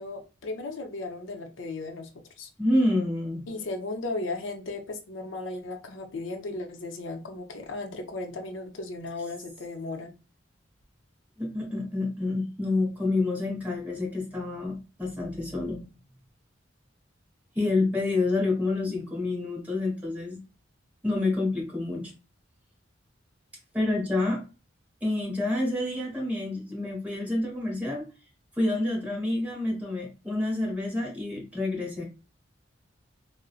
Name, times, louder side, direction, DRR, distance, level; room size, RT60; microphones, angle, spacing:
voice 1, 0.0-2.5 3.5-10.1, left 2 dB, 80° left, 0.6 m, -36 dB
voice 2, 2.6-3.5 11.4-15.9 17.5-20.4 21.0-22.1 23.7-24.4 25.0-28.0 28.5-32.0, left 2 dB, 10° right, 1.3 m, -28 dB
3.8 x 2.0 x 2.3 m
head